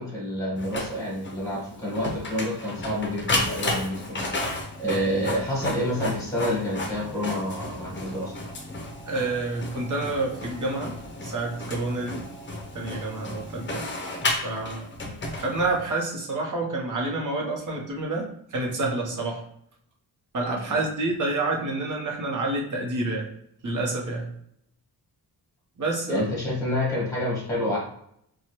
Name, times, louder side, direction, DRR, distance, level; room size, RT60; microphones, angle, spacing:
voice 1, 0.0-8.3 15.0-15.1 20.7-20.8 26.1-27.8, left 1 dB, 10° left, -4 dB, 1.3 m, -28 dB
Printer, 0.6-15.9, left 2 dB, 30° left, 0.6 m, -33 dB
voice 2, 9.1-11.0 11.2-12.3 12.7-13.9 14.4-14.9 15.4-19.4 20.3-23.3 23.6-24.3 25.8-26.2, right 2 dB, 45° right, -1 dB, 1.0 m, -28 dB
4.6 x 2.3 x 3.0 m, 0.71 s
wide cardioid pair, 165°, 42 cm